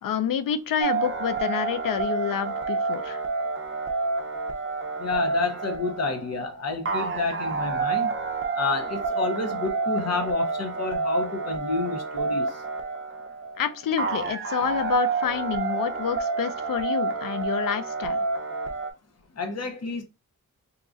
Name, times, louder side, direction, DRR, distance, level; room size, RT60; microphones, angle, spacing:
voice 1, 0.0-3.2 13.6-18.2, left 9 dB, 80° left, 0.5 m, -28 dB
sound 1, 0.8-18.9, right 4 dB, 40° right, 0.5 m, -29 dB
voice 2, 5.0-8.1 8.6-12.6 19.4-20.0, left 3 dB, 50° left, 0.8 m, -29 dB
2.9 x 2.4 x 3.7 m
wide cardioid pair, 95°, 33 cm